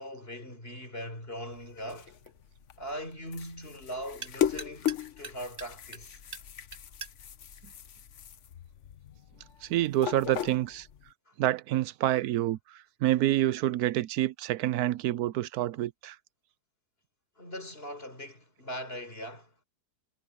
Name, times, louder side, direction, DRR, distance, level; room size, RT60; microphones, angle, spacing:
voice 1, 0.0-2.1 2.8-6.2 11.3-11.4 17.4-19.5, equal, 40° left, 5.0 m, -40 dB
sound 1, 1.1-8.8, right 5 dB, 40° right, 6.6 m, -49 dB
sound 2, 1.5-11.1, left 10 dB, 55° left, 1.1 m, -37 dB
voice 2, 9.6-10.9 11.4-16.2, right 14 dB, 90° right, 1.1 m, -28 dB
omnidirectional pair, 1.6 m